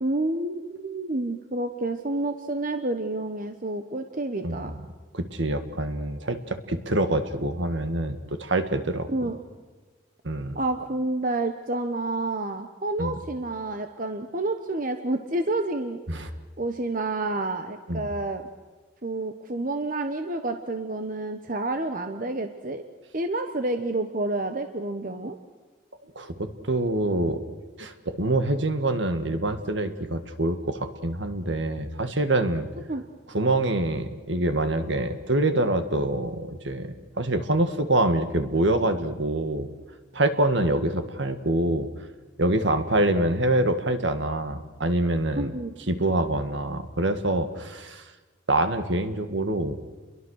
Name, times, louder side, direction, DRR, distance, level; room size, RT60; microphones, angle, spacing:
voice 1, 0.0-4.7 9.1-9.4 10.5-18.4 19.0-22.8 23.1-25.4 32.9-33.0 45.4-45.7, right 2 dB, 45° right, 7 dB, 1.2 m, -29 dB
voice 2, 4.4-4.8 5.1-9.3 10.2-10.6 13.0-13.2 16.1-16.3 17.9-18.1 26.2-27.4 27.8-32.7 33.3-39.7 40.1-41.9 42.4-45.5 45.9-48.1 48.5-49.8, right 1 dB, 65° right, 8 dB, 1.9 m, -25 dB
29.5 x 22.5 x 6.5 m, 1.3 s
head